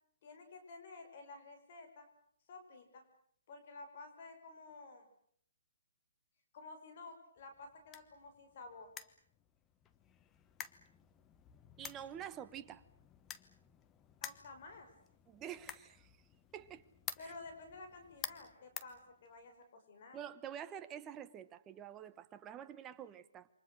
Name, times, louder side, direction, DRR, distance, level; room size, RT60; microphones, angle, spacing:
voice 1, 0.2-2.1 2.5-3.0 3.5-5.1 6.5-8.9 14.2-14.9 17.2-20.2, left 3 dB, 45° left, 6.3 m, -52 dB
sound 1, 7.4-19.6, left 9 dB, 15° left, 1.1 m, -52 dB
voice 2, 11.8-12.8 15.3-16.1 16.5-16.8 17.2-17.3 20.1-23.5, right 9 dB, 15° right, 1.2 m, -48 dB
28.0 x 25.0 x 6.6 m
hypercardioid pair, 155°, 0 cm